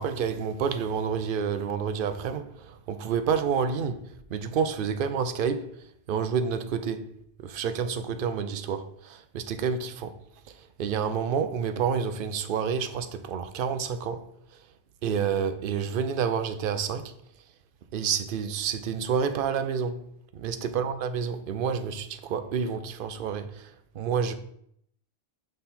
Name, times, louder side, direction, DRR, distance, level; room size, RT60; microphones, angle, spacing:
voice 1, 0.0-4.0 4.3-5.7 6.1-7.0 7.4-10.1 10.8-14.2 15.0-17.1 17.9-20.0 20.3-23.7 23.9-24.3, right 6 dB, 60° right, 0.7 m, -29 dB
5.8 x 3.9 x 4.2 m
omnidirectional pair, 1.2 m